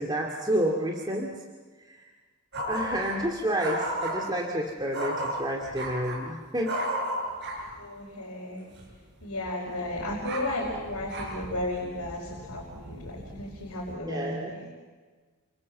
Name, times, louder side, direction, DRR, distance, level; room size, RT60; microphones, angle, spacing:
voice 1, 0.0-1.3 1.8-2.0 2.7-6.8 14.1-14.6, right 1 dB, 20° right, -1 dB, 2.3 m, -29 dB
sound 1, 2.5-3.3 3.6-4.3 4.9-6.3 6.6-7.8 8.7-8.9 9.2-13.9, right 1 dB, 50° right, 6.9 m, -35 dB
voice 2, 7.6-8.7 9.2-14.7, left 1 dB, 85° left, -3 dB, 5.4 m, -34 dB
29.0 x 25.0 x 7.6 m, 1.4 s
head